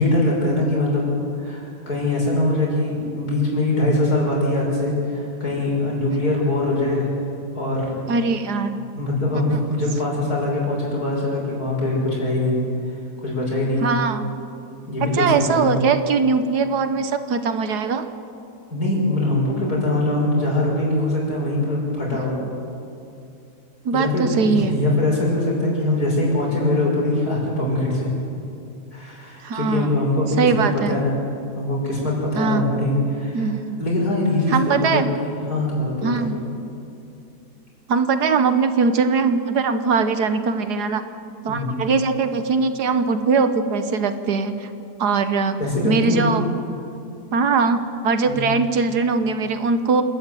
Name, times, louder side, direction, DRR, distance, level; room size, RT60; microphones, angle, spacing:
voice 1, 0.0-7.1 7.5-7.9 8.9-12.6 13.2-14.0 14.9-15.7 18.7-22.4 23.9-28.1 28.9-30.4 30.7-31.1 31.6-33.5 33.8-36.3 41.5-41.8 45.6-46.2 48.3-48.5, left 2 dB, 65° left, -3 dB, 6.4 m, -22 dB
voice 2, 8.1-8.8 9.5-9.6 13.8-14.3 15.1-18.1 22.1-22.5 23.8-24.8 29.4-29.9 30.4-31.0 32.3-32.7 33.3-33.8 34.5-35.1 36.0-36.4 37.9-41.0 41.4-44.7 45.0-45.6 45.8-46.4 47.3-50.0, right 4 dB, 70° right, 9 dB, 1.6 m, -21 dB
27.0 x 13.0 x 9.2 m, 2.6 s
omnidirectional pair, 1.8 m